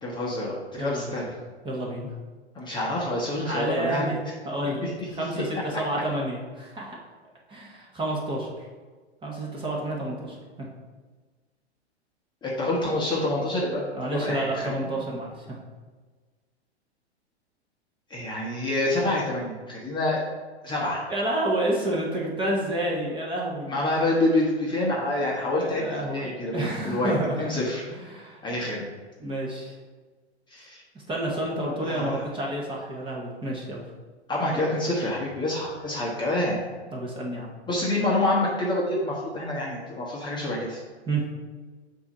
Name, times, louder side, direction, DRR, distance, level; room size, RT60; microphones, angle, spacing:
voice 1, 0.0-1.2 2.5-4.1 4.8-5.2 12.4-13.8 14.2-15.0 18.1-20.2 20.6-21.0 23.7-27.8 28.4-28.9 30.5-30.8 31.8-32.2 34.3-36.6 37.7-40.8, left 1 dB, 15° left, -4 dB, 1.0 m, -27 dB
voice 2, 0.8-1.2 1.6-2.1 3.4-7.0 7.5-8.5 9.2-10.7 13.9-15.6 21.1-23.7 25.6-27.5 27.9-28.4 29.2-29.8 31.1-33.8 34.5-34.6 36.9-37.5 41.1-41.2, right 1 dB, 15° right, -3 dB, 1.1 m, -30 dB
6.8 x 2.8 x 5.3 m, 1.4 s
hypercardioid pair, 115°, 34 cm